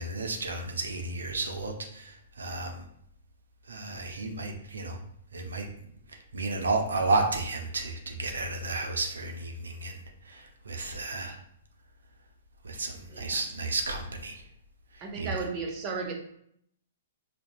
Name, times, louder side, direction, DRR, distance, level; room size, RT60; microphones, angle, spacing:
voice 1, 0.0-2.8 3.7-5.0 5.3-5.7 6.3-10.0 10.3-11.4 12.6-14.4 15.2-15.3, right 3 dB, 80° right, 3 dB, 0.6 m, -32 dB
voice 2, 13.1-13.5 15.0-16.1, right 4 dB, 30° right, 0 dB, 0.9 m, -34 dB
5.1 x 2.2 x 2.6 m, 0.70 s
hypercardioid pair, 120°, 0 cm